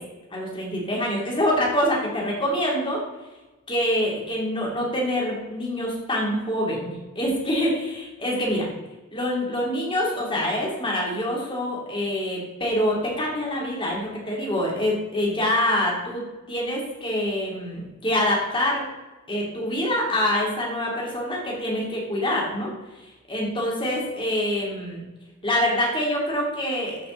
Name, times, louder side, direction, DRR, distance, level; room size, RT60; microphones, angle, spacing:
voice 1, 0.3-3.0 3.7-8.7 9.1-18.9 19.3-22.7 23.3-25.0 25.4-27.0, left 1 dB, 25° left, -3 dB, 2.9 m, -25 dB
14.0 x 6.0 x 3.9 m, 1.1 s
head